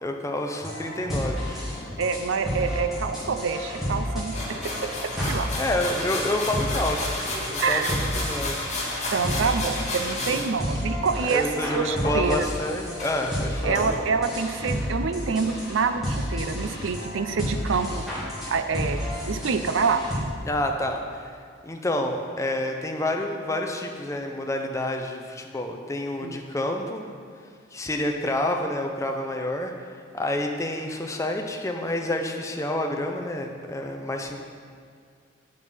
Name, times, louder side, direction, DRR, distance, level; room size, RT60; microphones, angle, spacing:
voice 1, 0.0-1.7 5.6-7.2 7.5-8.6 10.3-10.4 11.3-13.9 20.4-21.3 21.6-27.0 27.7-34.4, left 1 dB, 15° left, 3 dB, 0.6 m, -28 dB
sound 1, 0.6-20.2, equal, ahead, 2.0 m, -31 dB
voice 2, 2.0-4.3 5.3-5.5 7.6-7.9 9.1-11.4 11.7-12.5 13.6-18.0 18.5-20.0 26.2-26.4, right 5 dB, 85° right, 9 dB, 0.5 m, -26 dB
sound 2, 4.3-10.5 12.0-12.6 13.0-13.1 13.7-13.9, left 2 dB, 35° left, 1.6 m, -31 dB
7.8 x 5.2 x 5.5 m, 2.2 s
head